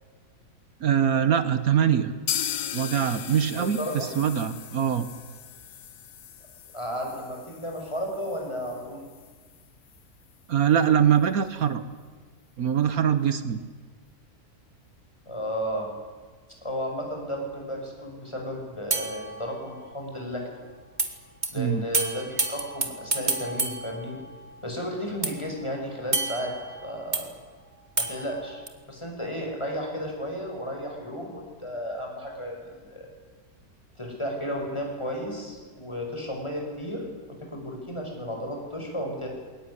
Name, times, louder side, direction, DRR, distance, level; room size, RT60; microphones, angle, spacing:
voice 1, 0.8-2.1 2.7-5.1 10.5-11.8 12.6-13.6 21.6-21.8, right 8 dB, 70° right, 12 dB, 1.5 m, -23 dB
sound 1, 2.3-10.0 10.3-10.4 10.7-10.8 11.2-11.3, left 10 dB, 85° left, 1.5 m, -37 dB
voice 2, 3.5-4.1 6.7-9.0 15.3-15.9 16.6-20.4 21.5-24.2 24.6-26.5 26.8-27.2 28.0-28.6 28.9-33.1 34.0-39.3, equal, 20° left, 1 dB, 5.9 m, -33 dB
sound 2, 18.9-20.1 21.0-21.1 21.4-21.5 21.9-24.7 25.2-27.3 28.0-28.7, right 3 dB, 30° right, 2.0 m, -31 dB
21.5 x 18.5 x 9.9 m, 1.5 s
omnidirectional pair, 1.6 m